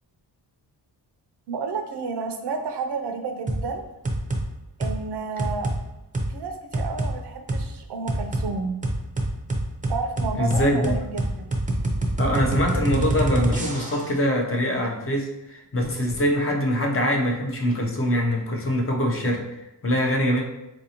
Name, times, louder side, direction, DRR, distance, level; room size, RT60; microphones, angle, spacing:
voice 1, 1.5-3.8 4.8-5.7 6.3-8.8 9.9-11.5, right 4 dB, 75° right, 5 dB, 0.5 m, -31 dB
sound 1, 3.5-3.7 4.0-4.4 4.8-5.0 5.4-5.8 6.1-6.3 6.7-7.1 7.5-7.6 8.1-8.5 8.8-14.1, right 1 dB, 20° right, 0.5 m, -25 dB
voice 2, 10.3-11.0 12.2-20.4, equal, 35° left, 0 dB, 0.5 m, -24 dB
4.0 x 2.6 x 2.8 m, 0.92 s
wide cardioid pair, 135°, 41 cm